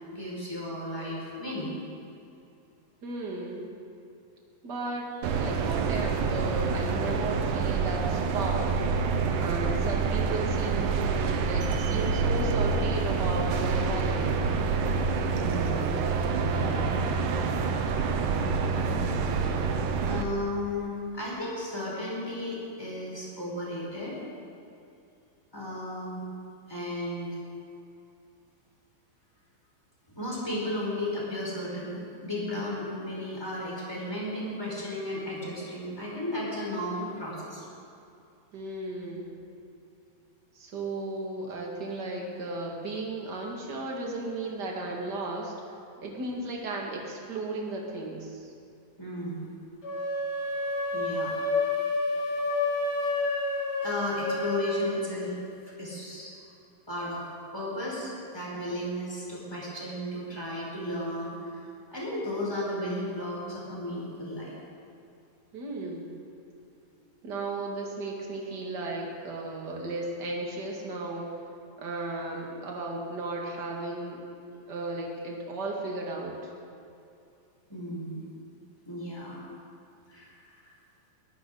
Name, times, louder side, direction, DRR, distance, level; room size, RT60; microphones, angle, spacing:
voice 1, 0.1-1.7 15.2-15.9 16.4-16.9 20.0-24.2 25.5-26.2 26.7-27.4 30.1-37.6 49.0-49.5 50.9-51.3 53.0-53.5 53.8-55.4 55.6-56.3 56.9-57.2 57.5-61.6 61.9-64.5 77.7-78.2 78.9-79.4 80.1-80.3 80.6-80.7, left 1 dB, 5° left, -5 dB, 4.8 m, -34 dB
voice 2, 3.0-3.7 4.6-8.8 9.4-14.4 38.5-39.4 40.5-45.5 46.0-48.5 65.5-66.2 67.2-71.3 71.8-74.2 74.5-76.5, right 2 dB, 35° right, -1 dB, 2.3 m, -35 dB
sound 1, 5.2-20.2, right 4 dB, 70° right, 2.4 m, -27 dB
sound 2, 49.8-54.8, left 2 dB, 35° left, 5.9 m, -29 dB
22.5 x 15.0 x 4.0 m, 2.6 s
omnidirectional pair, 4.1 m